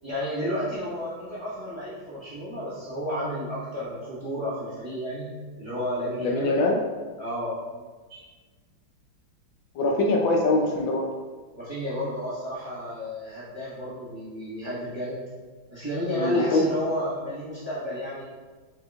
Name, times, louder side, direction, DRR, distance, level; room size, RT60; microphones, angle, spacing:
voice 1, 0.0-6.5 7.2-7.6 8.1-8.2 11.5-15.2 15.7-18.2, equal, 15° right, -11 dB, 1.3 m, -32 dB
voice 2, 6.2-6.8 9.8-11.1 16.1-16.6, left 2 dB, 75° left, 0 dB, 1.3 m, -23 dB
4.8 x 4.5 x 2.4 m, 1.4 s
omnidirectional pair, 2.2 m